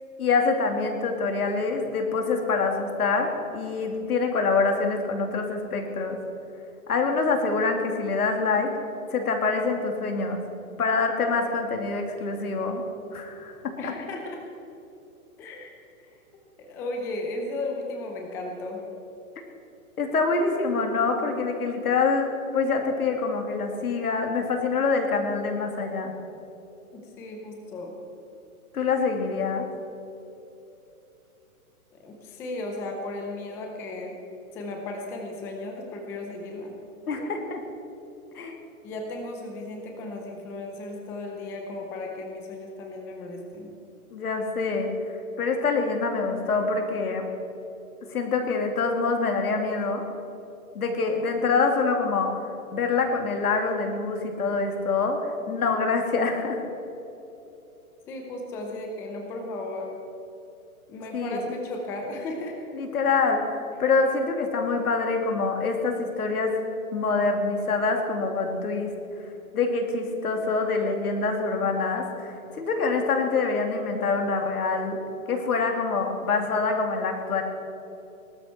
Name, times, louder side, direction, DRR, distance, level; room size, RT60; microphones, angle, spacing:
voice 1, 0.2-6.2 6.9-8.7 9.1-10.4 10.8-12.8 13.1-13.9 20.0-26.1 28.7-29.7 37.1-37.6 38.3-38.5 44.1-44.9 45.4-47.3 48.1-50.0 50.7-52.4 52.7-56.6 61.1-61.4 62.7-66.5 66.9-68.9 69.5-75.0 75.3-77.4, left 4 dB, 75° left, 3 dB, 2.8 m, -25 dB
voice 2, 13.8-14.4 15.4-15.7 16.0-16.1 16.6-18.8 26.9-28.0 31.9-34.2 34.5-36.8 38.8-43.7 58.1-59.9 60.9-62.6, left 2 dB, 5° left, 2 dB, 0.5 m, -35 dB
19.0 x 12.5 x 4.5 m, 2.9 s
hypercardioid pair, 145°, 44 cm